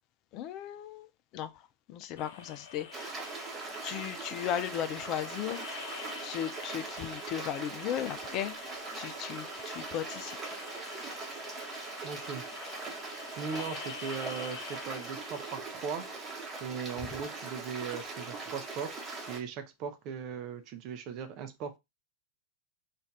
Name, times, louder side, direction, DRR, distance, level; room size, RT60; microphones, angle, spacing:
voice 1, 0.3-3.1 3.8-10.4, left 10 dB, 40° left, 0.4 m, -37 dB
sound 1, 2.2-15.6, left 6 dB, 55° left, 0.9 m, -47 dB
Stream, 2.9-19.4, right 3 dB, 20° right, 1.0 m, -41 dB
voice 2, 12.0-12.4 13.4-16.1 16.6-18.9 19.3-21.8, right 6 dB, 40° right, 0.6 m, -38 dB
3.1 x 2.5 x 3.6 m
figure-of-eight pair, 90°, 0 cm